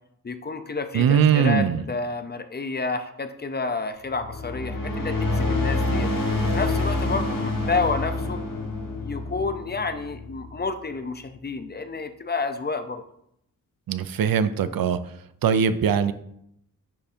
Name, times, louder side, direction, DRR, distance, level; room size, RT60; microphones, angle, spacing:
voice 1, 0.2-6.1 6.4-8.4 9.0-13.0, left 3 dB, 30° left, 9 dB, 0.5 m, -30 dB
voice 2, 0.9-1.8 13.9-15.0 15.4-16.1, right 7 dB, 85° right, 13 dB, 0.5 m, -21 dB
sound 1, 4.0-10.7, left 2 dB, 70° left, 1.4 m, -27 dB
10.0 x 3.5 x 4.3 m, 0.74 s
wide cardioid pair, 180°, 34 cm